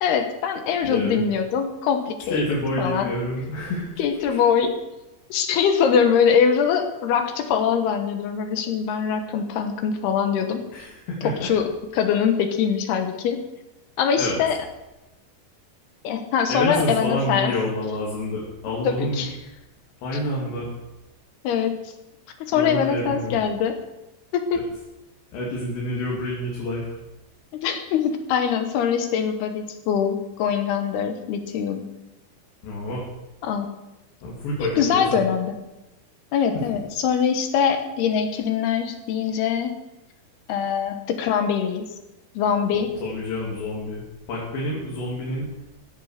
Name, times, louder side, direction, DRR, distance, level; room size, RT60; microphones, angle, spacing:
voice 1, 0.0-2.4 2.8-3.1 4.0-4.7 5.3-10.6 11.4-11.7 11.9-13.4 14.0-14.6 16.0-17.5 18.8-19.3 21.4-21.7 22.5-23.8 24.3-24.6 27.6-31.8 33.4-33.7 34.6-35.5 36.3-39.7 40.5-41.8 42.3-42.9, left 7 dB, 75° left, 7 dB, 3.2 m, -23 dB
voice 2, 0.8-1.2 2.3-3.9 4.3-4.4 10.7-11.5 14.2-14.4 16.5-19.3 20.0-20.7 22.5-23.4 25.3-27.0 32.6-33.0 34.2-35.2 42.7-45.5, left 1 dB, 90° left, -4 dB, 5.1 m, -28 dB
15.5 x 9.3 x 6.6 m, 0.98 s
omnidirectional pair, 4.9 m